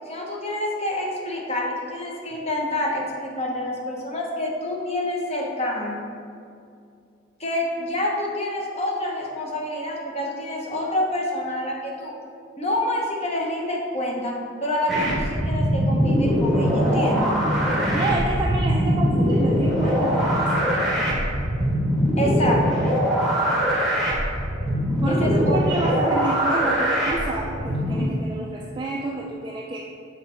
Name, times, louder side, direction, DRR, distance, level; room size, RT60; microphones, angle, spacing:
voice 1, 0.1-6.0 7.4-12.1 12.6-14.4 14.6-17.3 22.2-22.9 25.1-25.8, left 1 dB, 30° left, -1 dB, 0.9 m, -27 dB
sound 1, 14.9-28.0, equal, ahead, 1.0 m, -22 dB
voice 2, 17.9-20.9 25.0-29.8, right 2 dB, 20° right, -3 dB, 0.4 m, -29 dB
6.4 x 3.9 x 4.4 m, 2.4 s
head